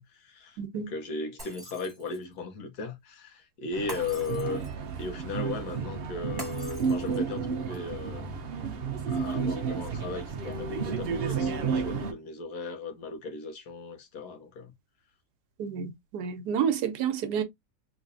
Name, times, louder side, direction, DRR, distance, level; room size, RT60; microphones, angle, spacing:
voice 1, 0.0-4.7 5.0-8.5 9.1-14.7, left 3 dB, 70° left, 1.5 m, -37 dB
voice 2, 0.6-0.9 15.6-17.4, right 8 dB, 80° right, 1.3 m, -29 dB
Shatter, 1.4-2.3 3.9-4.9 6.4-7.4, right 1 dB, 15° right, 1.4 m, -44 dB
sound 1, 3.7-12.1, right 5 dB, 60° right, 0.6 m, -32 dB
3.3 x 3.1 x 2.6 m
omnidirectional pair, 1.7 m